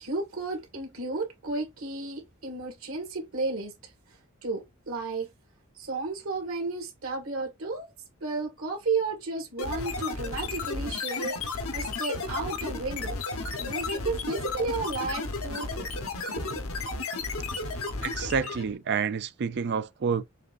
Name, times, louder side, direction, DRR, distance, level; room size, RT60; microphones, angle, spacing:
voice 1, 0.0-5.3 5.8-7.9 8.2-13.2 13.6-15.9 16.3-16.6, right 3 dB, 90° right, 1.9 m, -33 dB
sound 1, 9.6-18.8, left 3 dB, 85° left, 1.1 m, -33 dB
voice 2, 18.0-20.2, right 6 dB, 55° right, 0.4 m, -29 dB
6.4 x 2.6 x 2.5 m
head